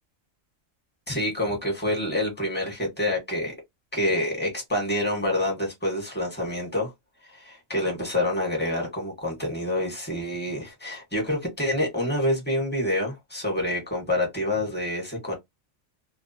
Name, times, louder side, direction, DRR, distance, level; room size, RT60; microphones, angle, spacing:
voice 1, 1.1-3.5 3.9-6.9 7.3-15.3, left 1 dB, 10° left, 1.1 m, -27 dB
2.3 x 2.2 x 2.7 m
omnidirectional pair, 1.4 m